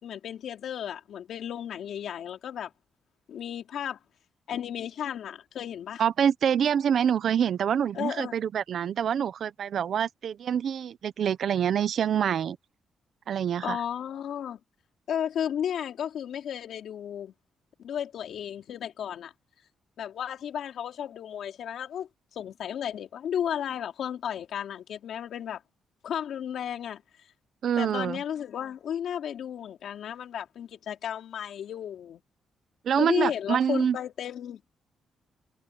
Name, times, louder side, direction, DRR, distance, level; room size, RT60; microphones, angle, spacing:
voice 1, 0.0-2.7 3.3-4.0 4.5-6.0 7.9-8.4 13.6-14.6 15.1-17.3 17.8-19.3 20.0-22.1 22.3-25.6 26.0-27.0 27.8-32.2 33.0-34.6, left 9 dB, 65° left, 3.6 m, -33 dB
voice 2, 6.0-12.6 13.3-13.8 27.6-28.2 32.8-34.0, right 8 dB, 55° right, 0.8 m, -26 dB
cardioid pair, 155°, 0 cm